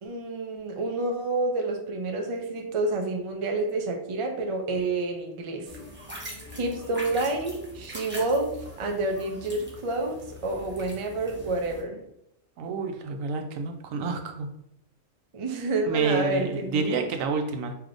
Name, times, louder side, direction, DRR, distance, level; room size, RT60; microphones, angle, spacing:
voice 1, 0.0-5.7 6.5-12.0 15.3-16.8, right 2 dB, 50° right, 3 dB, 0.3 m, -29 dB
sound 1, 5.7-11.8, equal, 10° right, 0.7 m, -42 dB
voice 2, 12.6-14.5 15.9-17.8, right 4 dB, 85° right, 4 dB, 1.0 m, -29 dB
4.8 x 2.8 x 2.5 m, 0.78 s
omnidirectional pair, 1.3 m